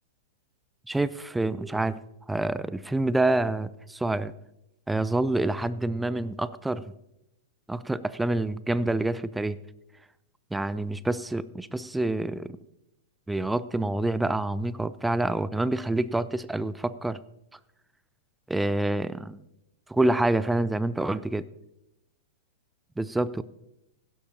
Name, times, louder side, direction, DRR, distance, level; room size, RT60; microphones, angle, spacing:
voice 1, 0.9-2.0 2.3-4.3 4.9-6.8 7.7-9.6 10.5-12.5 13.3-17.2 18.5-19.4 19.9-21.5 23.0-23.4, right 2 dB, 5° right, 17 dB, 0.4 m, -27 dB
16.0 x 11.5 x 2.8 m, 0.86 s
figure-of-eight pair, 100°, 0 cm